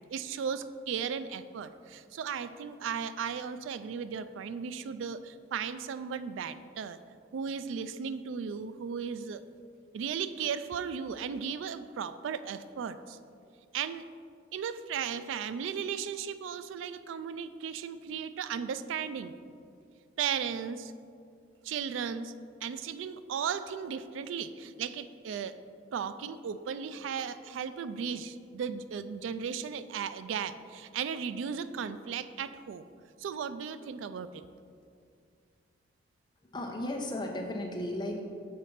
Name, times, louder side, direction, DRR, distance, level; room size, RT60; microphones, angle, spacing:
voice 1, 0.1-7.0 7.3-9.4 9.9-13.2 13.7-14.0 14.5-19.4 20.2-20.9 21.6-22.3 22.6-25.6 25.9-32.9 33.2-34.4, right 7 dB, 85° right, 13 dB, 0.3 m, -36 dB
voice 2, 36.5-38.2, left 1 dB, 25° left, 0 dB, 0.7 m, -35 dB
6.7 x 4.1 x 5.6 m, 2.3 s
head